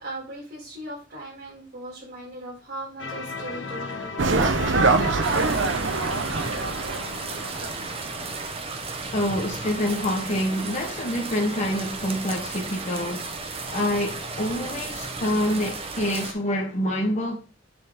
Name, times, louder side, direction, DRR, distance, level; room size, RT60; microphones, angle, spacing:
voice 1, 0.0-4.2, right 1 dB, 60° right, 3.9 m, -38 dB
sound 1, 3.0-9.8, left 3 dB, 85° left, 1.0 m, -37 dB
sound 2, 4.2-8.1 8.3-8.4, right 3 dB, 90° right, 0.8 m, -24 dB
sound 3, 5.2-16.3, right 3 dB, 30° right, 0.9 m, -34 dB
voice 2, 9.1-13.3 13.7-17.4, left 1 dB, 40° left, 1.1 m, -26 dB
7.1 x 3.7 x 4.9 m
head